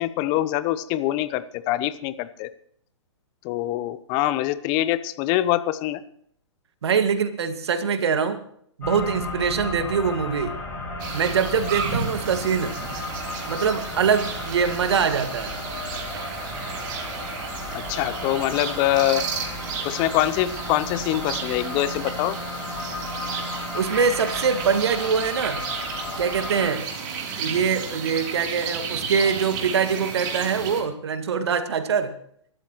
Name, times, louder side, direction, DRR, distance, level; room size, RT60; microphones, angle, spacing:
voice 1, 0.0-2.5 3.4-6.0 17.7-19.2 19.8-22.4, left 14 dB, 30° left, 15 dB, 0.8 m, -24 dB
voice 2, 6.8-8.4 8.8-10.5 11.1-12.7 13.5-15.5 23.7-25.6 26.2-26.9 27.4-32.1, right 6 dB, 60° right, 9 dB, 1.9 m, -23 dB
sound 1, 8.8-26.7, left 2 dB, 10° left, 5.9 m, -34 dB
sound 2, 11.0-30.8, right 6 dB, 40° right, 3.3 m, -33 dB
24.0 x 13.0 x 3.1 m, 0.65 s
figure-of-eight pair, 125°, 16 cm